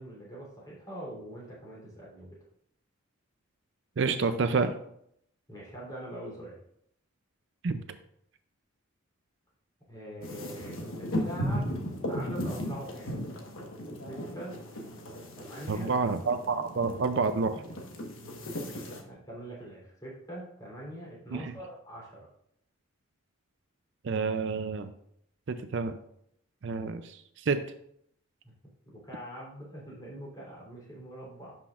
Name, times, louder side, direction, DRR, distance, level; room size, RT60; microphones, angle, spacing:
voice 1, 0.0-2.3 5.5-6.6 9.9-11.8 12.1-13.2 14.1-14.6 15.3-15.9 18.2-18.7 19.0-22.2 28.4-28.5 28.9-31.6, right 1 dB, 20° left, -5 dB, 3.3 m, -43 dB
voice 2, 4.0-4.7 7.6-7.8 15.7-17.6 21.3-21.5 24.0-24.9 25.5-26.0 26.6-27.6, right 4 dB, 60° right, 9 dB, 0.5 m, -29 dB
sound 1, 10.2-19.0, equal, 70° left, 1.3 m, -36 dB
11.5 x 6.0 x 2.5 m, 0.71 s
head